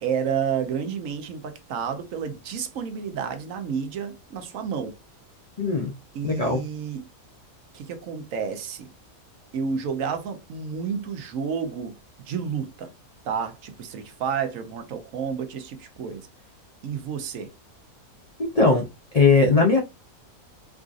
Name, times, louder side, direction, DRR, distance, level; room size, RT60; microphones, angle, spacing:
voice 1, 0.0-4.9 6.1-7.0 7.7-8.9 9.5-11.9 12.2-12.9 13.2-16.3 16.8-17.5, right 7 dB, 70° right, 1.0 m, -30 dB
voice 2, 5.6-5.9 6.2-6.6 18.4-18.8 19.1-19.8, left 3 dB, 75° left, 0.3 m, -19 dB
4.7 x 2.4 x 2.4 m
omnidirectional pair, 1.5 m